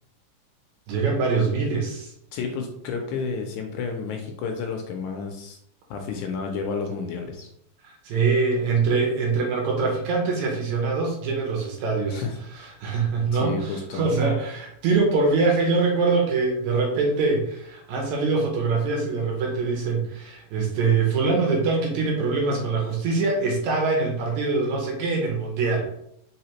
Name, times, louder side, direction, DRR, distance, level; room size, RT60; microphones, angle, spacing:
voice 1, 0.9-2.1 7.8-12.2 12.5-25.9, right 4 dB, 70° right, 0 dB, 2.1 m, -24 dB
voice 2, 2.3-5.6 5.9-7.5 12.1-12.4 13.3-14.0, left 5 dB, 80° left, 3 dB, 1.8 m, -31 dB
4.9 x 3.3 x 2.9 m, 0.73 s
omnidirectional pair, 3.7 m